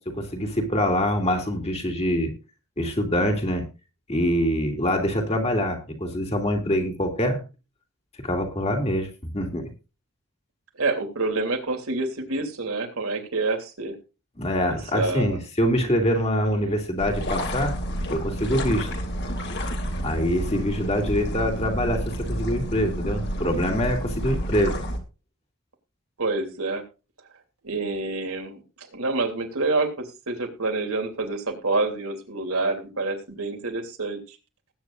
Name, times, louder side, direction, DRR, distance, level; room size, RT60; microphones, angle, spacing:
voice 1, 0.1-2.3 2.8-3.6 4.1-7.4 8.2-9.7 14.4-17.7 18.1-18.9 20.0-24.8, equal, 30° left, 3 dB, 2.7 m, -25 dB
voice 2, 10.8-14.0 14.7-15.4 16.5-16.7 26.2-26.8 27.6-34.4, right 3 dB, 75° right, 3 dB, 3.1 m, -27 dB
sound 1, 17.0-25.0, equal, 50° left, 2.9 m, -30 dB
20.0 x 9.3 x 2.6 m, 0.30 s
head